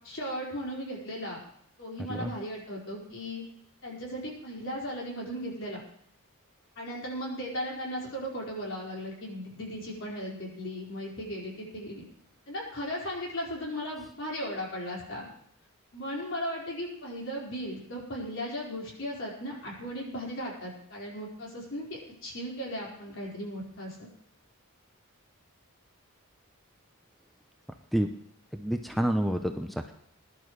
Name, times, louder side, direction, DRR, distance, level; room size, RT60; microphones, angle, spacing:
voice 1, 0.0-1.4 1.8-3.4 3.8-5.8 6.8-12.0 12.5-15.3 15.9-24.1, equal, 60° left, -3 dB, 4.7 m, -36 dB
voice 2, 28.5-29.9, equal, ahead, 5 dB, 0.5 m, -28 dB
21.5 x 11.0 x 3.2 m, 0.67 s
head